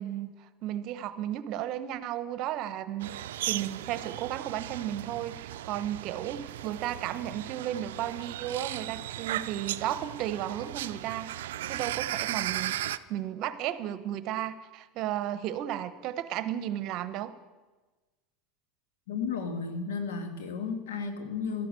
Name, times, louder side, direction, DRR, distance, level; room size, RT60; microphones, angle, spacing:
voice 1, 0.0-17.3, right 11 dB, 55° right, 13 dB, 1.0 m, -34 dB
sound 1, 3.0-13.0, right 13 dB, 85° right, 0.4 m, -36 dB
voice 2, 19.1-21.7, left 5 dB, 90° left, 7 dB, 1.9 m, -33 dB
13.0 x 11.0 x 7.7 m, 1.2 s
supercardioid pair, 110°, 0 cm